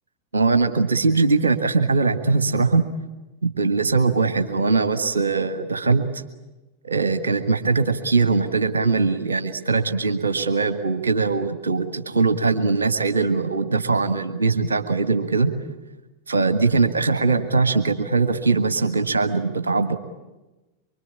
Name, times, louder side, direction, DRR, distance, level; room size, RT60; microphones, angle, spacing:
voice 1, 0.3-2.8 3.4-6.2 6.8-15.5 16.3-20.0, right 4 dB, 75° right, 8 dB, 1.6 m, -21 dB
25.0 x 24.5 x 8.7 m, 1.1 s
figure-of-eight pair, 90°, 0 cm